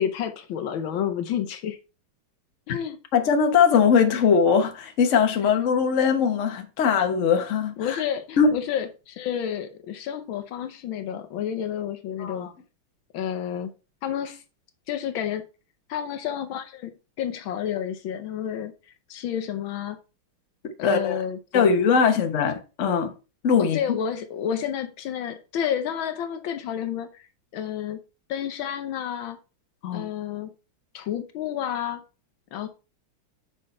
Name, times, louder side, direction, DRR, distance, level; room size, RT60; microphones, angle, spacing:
voice 1, 0.0-1.8 2.7-3.0 7.8-12.5 13.1-13.7 14.0-14.4 14.9-15.4 15.9-18.7 19.1-20.0 20.8-21.7 23.6-27.3 27.5-28.0 28.3-29.4 29.9-30.5 30.9-32.0 32.5-32.7, left 9 dB, 75° left, 1.5 m, -30 dB
voice 2, 3.1-8.0 8.4-8.6 12.2-12.5 20.8-21.2 21.5-23.1 23.4-23.8 29.8-30.1, left 6 dB, 45° left, 1.1 m, -21 dB
6.5 x 5.5 x 4.2 m
omnidirectional pair, 2.3 m